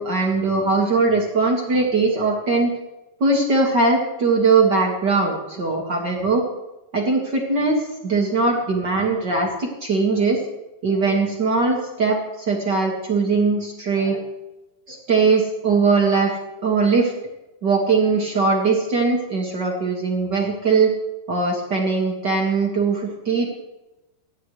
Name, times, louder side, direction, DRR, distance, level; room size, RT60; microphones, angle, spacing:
voice 1, 0.0-2.7 3.2-6.5 6.9-10.5 10.8-14.2 14.9-17.1 17.6-20.9 21.3-23.5, right 4 dB, 65° right, -1 dB, 1.1 m, -20 dB
28.0 x 10.5 x 3.3 m, 1.0 s
omnidirectional pair, 5.2 m